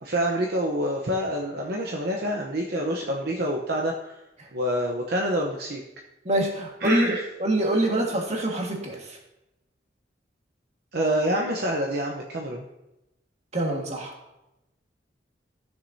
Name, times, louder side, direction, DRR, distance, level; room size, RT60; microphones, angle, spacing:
voice 1, 0.0-4.1 4.5-5.8 6.8-7.2 10.9-12.6, equal, 60° right, 0 dB, 0.9 m, -27 dB
voice 2, 6.3-9.2 13.5-14.1, right 1 dB, 40° right, 0 dB, 1.7 m, -25 dB
14.5 x 6.6 x 2.7 m, 0.93 s
head